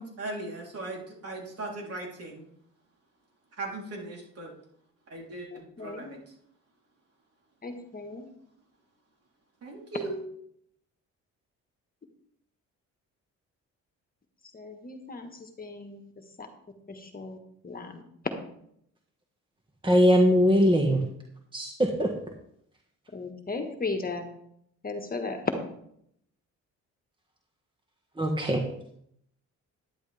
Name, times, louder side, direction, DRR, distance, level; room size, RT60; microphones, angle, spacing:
voice 1, 0.0-2.5 3.6-4.5 5.1-6.1 9.6-10.2, right 2 dB, 50° right, -1 dB, 3.5 m, -38 dB
voice 2, 5.5-6.2 7.6-8.3 14.5-16.1 16.4-16.5 16.9-17.4 17.6-18.0 23.1-24.3 24.8-25.4, left 3 dB, 30° left, 5 dB, 1.5 m, -37 dB
voice 3, 19.8-21.0 21.5-22.1 28.2-28.6, equal, 15° right, 1 dB, 1.5 m, -21 dB
11.0 x 10.0 x 3.4 m, 0.71 s
cardioid pair, 90°, 30 cm